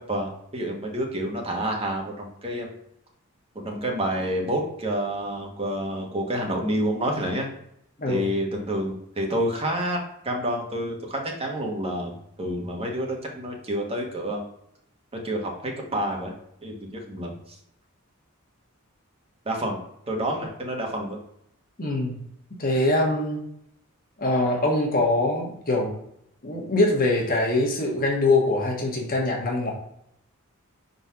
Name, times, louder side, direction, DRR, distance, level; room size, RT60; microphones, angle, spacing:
voice 1, 0.0-2.7 3.5-7.5 8.1-14.4 15.2-16.3 16.6-17.6 19.4-19.8 20.1-21.2, right 1 dB, 30° right, 0 dB, 1.3 m, -28 dB
voice 2, 21.8-22.2 22.6-23.5 24.2-25.9 26.4-29.7, left 2 dB, 45° left, -1 dB, 1.3 m, -23 dB
4.5 x 4.0 x 5.7 m, 0.74 s
head